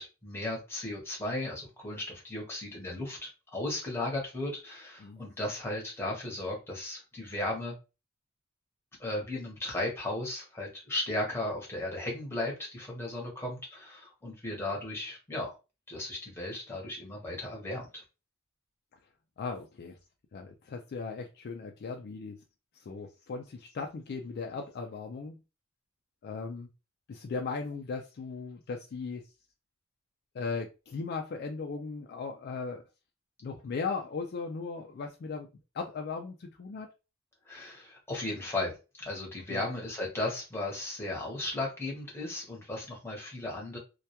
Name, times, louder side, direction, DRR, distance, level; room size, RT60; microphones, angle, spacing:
voice 1, 0.0-7.8 9.0-15.6 15.9-18.0 37.5-43.8, left 2 dB, 10° left, -1 dB, 0.8 m, -36 dB
voice 2, 19.4-20.0 20.3-22.4 22.8-25.4 26.2-26.7 27.1-29.2 30.3-32.8 33.4-35.5 35.7-36.9 39.5-39.6, left 4 dB, 50° left, 3 dB, 0.3 m, -37 dB
2.2 x 2.2 x 2.8 m, 0.29 s
head